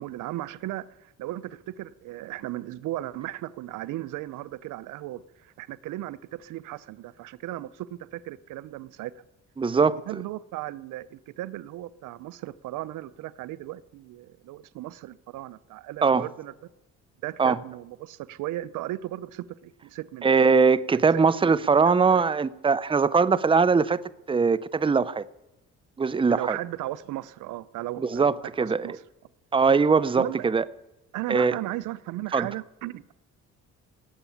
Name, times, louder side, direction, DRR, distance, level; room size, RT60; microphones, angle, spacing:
voice 1, 0.0-9.2 10.1-16.5 17.2-20.3 21.1-21.5 21.8-22.3 26.3-29.0 30.2-30.5 31.1-33.1, right 15 dB, 85° right, 0.6 m, -36 dB
voice 2, 9.6-10.0 16.0-16.3 17.4-17.6 20.2-24.0 24.3-25.3 26.0-26.6 28.0-29.0 29.5-30.6 31.3-31.5 32.3-32.5, right 5 dB, 15° right, 0.6 m, -21 dB
18.0 x 8.0 x 8.6 m
cardioid pair, 90°, 30 cm